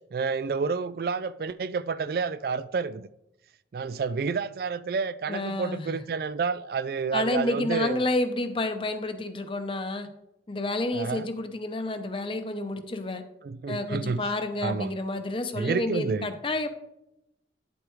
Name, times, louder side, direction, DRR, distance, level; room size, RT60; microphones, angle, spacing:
voice 1, 0.1-3.1 3.7-8.0 10.9-11.3 13.4-14.2 14.6-14.9 15.5-16.3, right 5 dB, 55° right, 0.3 m, -29 dB
voice 2, 5.3-5.9 7.1-10.1 10.5-13.2 13.7-16.7, left 2 dB, 30° left, 0.8 m, -30 dB
10.5 x 7.9 x 3.2 m
head